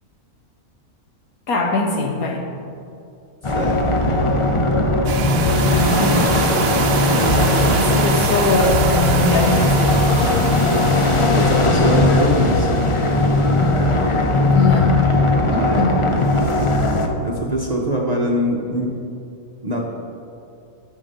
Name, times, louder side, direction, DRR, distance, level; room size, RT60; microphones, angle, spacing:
voice 1, 1.5-2.4 5.6-6.3 7.8-10.3 14.5-15.1 15.5-16.0, left 2 dB, 75° left, 2 dB, 1.6 m, -21 dB
sound 1, 3.4-17.1, left 2 dB, 40° left, 0.4 m, -18 dB
voice 2, 3.5-4.1 5.6-6.1 7.1-7.7 11.3-12.8 15.4-15.9 17.2-19.0 19.6-19.9, right 1 dB, 35° right, -1 dB, 0.8 m, -24 dB
sound 2, 5.0-11.7, right 8 dB, 65° right, 0.9 m, -26 dB
11.0 x 6.4 x 5.5 m, 2.6 s
omnidirectional pair, 1.6 m